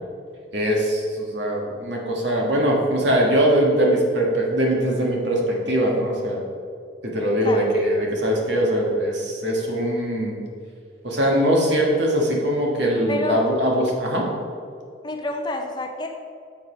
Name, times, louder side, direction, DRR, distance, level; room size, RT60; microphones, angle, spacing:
voice 1, 0.5-6.4 7.0-10.4 11.0-14.3, equal, 65° right, -1 dB, 1.6 m, -21 dB
voice 2, 13.1-13.5 15.0-16.1, left 1 dB, 25° left, 3 dB, 0.6 m, -28 dB
7.4 x 5.3 x 5.1 m, 2.2 s
head